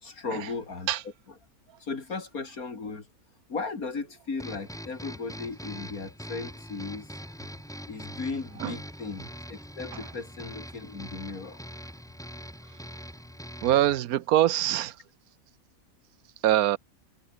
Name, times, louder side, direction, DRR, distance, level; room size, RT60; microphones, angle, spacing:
voice 1, 0.0-0.9 1.8-3.0 3.5-7.1 7.9-11.6, left 4 dB, 75° left, 3.4 m, -36 dB
sound 1, 4.4-14.0, equal, ahead, 4.9 m, -42 dB
voice 2, 13.6-14.9 16.4-16.8, right 13 dB, 90° right, 1.2 m, -23 dB
omnidirectional pair, 1.5 m